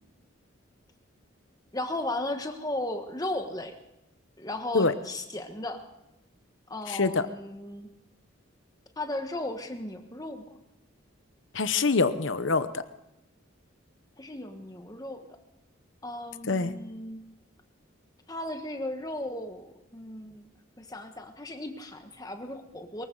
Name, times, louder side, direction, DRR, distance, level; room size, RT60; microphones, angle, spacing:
voice 1, 1.7-3.8 4.4-5.8 6.7-7.9 9.0-10.6 14.2-15.3 16.0-17.2 18.3-20.5 20.8-23.1, left 1 dB, 20° left, 6 dB, 1.3 m, -36 dB
voice 2, 6.9-7.2 11.5-12.8 16.5-16.7, left 4 dB, 65° left, 12 dB, 0.9 m, -25 dB
23.0 x 15.0 x 4.0 m, 0.92 s
head